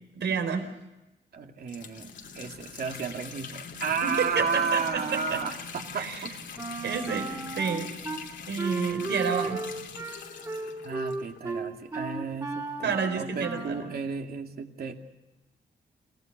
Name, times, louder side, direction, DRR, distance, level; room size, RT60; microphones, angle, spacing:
voice 1, 0.1-0.7 4.0-5.4 6.0-6.2 6.8-7.9 8.5-9.6 12.8-13.8, right 6 dB, 80° right, 6 dB, 4.7 m, -30 dB
voice 2, 1.3-6.3 10.8-15.0, right 5 dB, 60° right, 3 dB, 2.6 m, -33 dB
sound 1, 1.6-11.7 12.3-12.4 12.7-12.8 13.8-13.9, left 5 dB, 80° left, 2.8 m, -43 dB
Wind instrument woodwind instrument, 6.6-8.2 8.6-13.9, right 3 dB, 20° right, 3.4 m, -35 dB
29.5 x 18.5 x 6.7 m, 0.99 s
wide cardioid pair, 160°, 18 cm